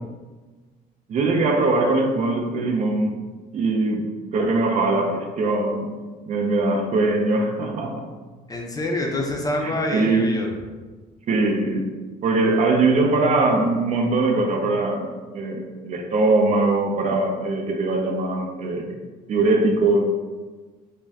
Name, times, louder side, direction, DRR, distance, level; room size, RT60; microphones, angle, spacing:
voice 1, 1.1-3.2 3.5-5.9 6.3-8.1 9.6-10.3 11.3-19.0 19.3-20.2, right 2 dB, 45° right, 3 dB, 0.4 m, -21 dB
voice 2, 8.5-10.5, left 1 dB, 20° left, 1 dB, 0.4 m, -26 dB
2.5 x 2.1 x 3.3 m, 1.3 s
cardioid pair, 110°, 17 cm